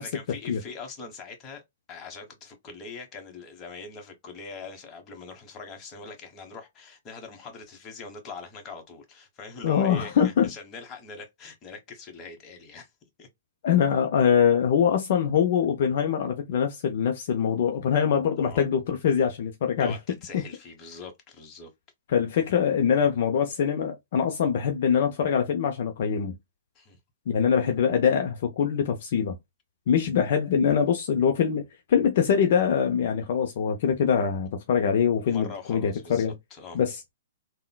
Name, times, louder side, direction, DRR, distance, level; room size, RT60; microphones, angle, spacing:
voice 1, 0.0-1.6 1.9-12.9 13.2-13.3 18.4-18.6 19.8-21.7 26.7-27.0 35.3-36.8, left 4 dB, 25° left, 1.2 m, -42 dB
voice 2, 9.6-10.5 13.6-20.0 22.1-26.4 27.3-29.4 29.9-31.6 31.9-36.3 36.7-37.0, left 7 dB, 55° left, 0.5 m, -23 dB
3.7 x 2.2 x 2.2 m
hypercardioid pair, 130°, 0 cm